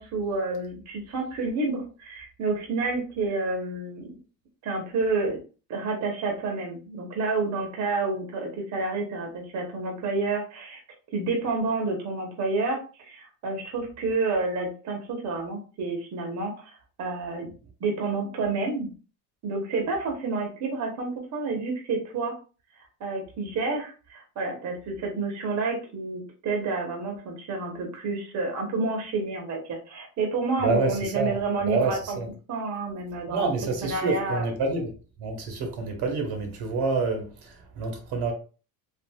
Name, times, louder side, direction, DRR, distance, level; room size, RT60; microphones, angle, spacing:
voice 1, 0.0-4.2 4.6-5.4 5.7-10.8 11.1-12.8 13.1-17.5 17.8-18.9 19.4-22.3 23.0-32.2 32.5-33.5 33.8-34.5, right 3 dB, 45° right, 0.9 m, -29 dB
voice 2, 30.6-31.4 31.7-32.3 33.3-34.9 35.2-38.3, right 3 dB, 70° right, 1.0 m, -27 dB
3.4 x 2.4 x 2.2 m
cardioid pair, 110°, 40 cm